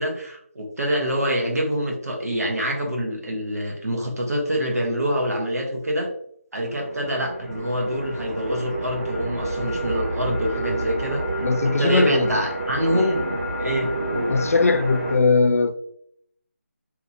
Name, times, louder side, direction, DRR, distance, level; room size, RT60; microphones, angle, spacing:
voice 1, 0.0-6.1 6.5-13.3 13.6-14.3, equal, 90° right, 1.0 m, -26 dB
sound 1, 6.6-15.2, right 1 dB, 60° right, 1.5 m, -29 dB
voice 2, 11.4-12.3 12.9-13.1 14.3-15.7, left 3 dB, 70° left, 0.4 m, -20 dB
2.8 x 2.4 x 2.6 m
figure-of-eight pair, 170°, 8 cm